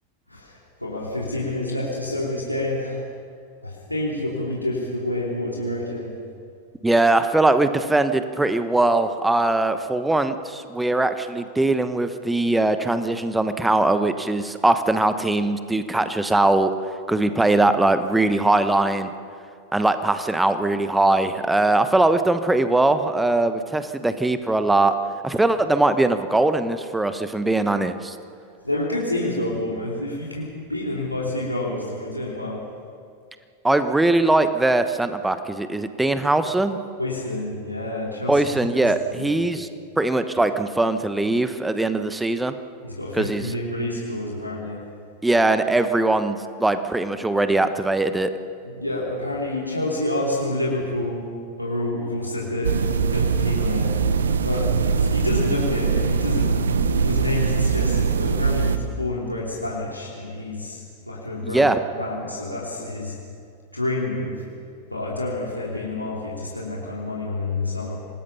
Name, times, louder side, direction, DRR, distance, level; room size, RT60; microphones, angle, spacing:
voice 1, 0.3-3.1 3.6-6.1 28.6-32.6 37.0-38.7 39.2-39.3 42.8-44.8 48.6-51.3 51.6-54.0 54.4-56.7 57.0-61.7 62.0-63.2 63.7-64.4 64.9-68.0, left 1 dB, 85° left, -4 dB, 2.9 m, -28 dB
voice 2, 6.8-16.7 17.1-19.1 19.7-24.9 25.2-28.2 33.6-36.8 38.3-39.7 40.0-42.5 43.1-43.5 45.2-48.3 61.4-61.8, right 2 dB, 5° right, 10 dB, 1.2 m, -21 dB
sound 1, 52.6-58.8, right 5 dB, 70° right, 1.0 m, -22 dB
27.0 x 19.0 x 5.7 m, 2.3 s
figure-of-eight pair, 90°, 0 cm